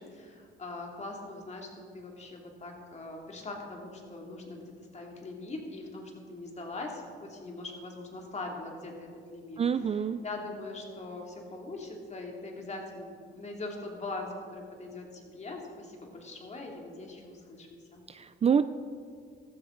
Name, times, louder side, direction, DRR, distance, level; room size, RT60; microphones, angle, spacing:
voice 1, 0.0-10.0 10.2-18.0, left 2 dB, 35° left, 0 dB, 2.7 m, -42 dB
voice 2, 9.6-10.2 18.1-18.7, right 7 dB, 30° right, 12 dB, 0.4 m, -26 dB
15.0 x 13.0 x 3.9 m, 2.2 s
cardioid pair, 90°, 20 cm